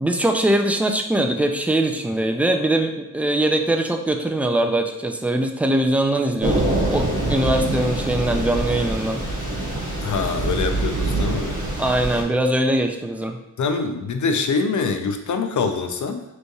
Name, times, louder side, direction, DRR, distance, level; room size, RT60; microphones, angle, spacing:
voice 1, 0.0-9.2 11.8-13.4, right 1 dB, 5° right, 4 dB, 0.3 m, -22 dB
Thunder / Rain, 6.4-12.2, right 2 dB, 25° right, 1.2 m, -24 dB
voice 2, 10.0-11.6 13.6-16.2, left 4 dB, 65° left, 7 dB, 0.5 m, -24 dB
5.2 x 3.2 x 2.3 m, 1.0 s
wide cardioid pair, 100°, 32 cm